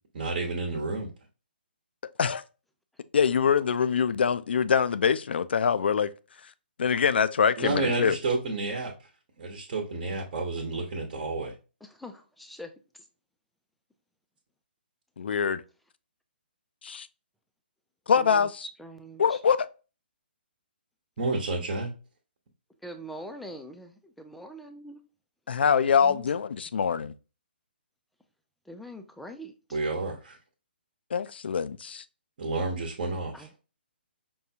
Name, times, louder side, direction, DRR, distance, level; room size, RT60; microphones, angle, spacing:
voice 1, 0.1-1.1 7.6-9.1 9.4-11.5 21.2-21.9 29.7-30.4 32.4-33.5, right 3 dB, 45° right, 1.0 m, -30 dB
voice 2, 3.1-6.1 6.8-8.2 15.2-15.6 16.8-17.1 18.1-18.6 19.2-19.6 25.5-27.1 31.1-32.0, left 7 dB, 70° left, 0.4 m, -24 dB
voice 3, 11.8-13.1 18.2-18.5 18.8-19.4 22.8-25.0 26.0-26.3 28.7-29.8 33.3-33.6, equal, ahead, 0.4 m, -44 dB
5.2 x 2.3 x 2.7 m
hypercardioid pair, 140°, 6 cm